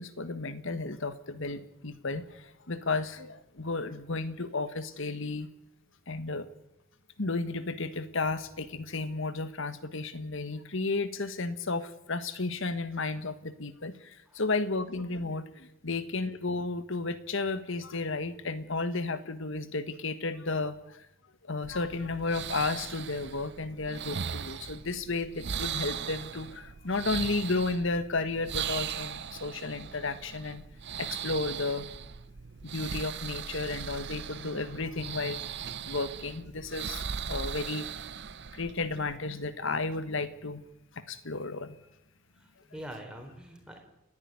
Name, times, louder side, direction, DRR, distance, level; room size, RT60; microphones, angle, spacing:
voice 1, 0.0-5.5 6.1-6.4 7.2-21.0 21.5-30.6 31.0-31.9 32.6-37.9 38.5-40.6 41.1-41.8, left 3 dB, 65° left, 12 dB, 1.6 m, -33 dB
sound 1, 21.6-39.2, right 7 dB, 55° right, 0.7 m, -39 dB
voice 2, 42.2-43.8, equal, 5° right, 2 dB, 3.9 m, -45 dB
29.5 x 11.0 x 9.6 m, 0.86 s
head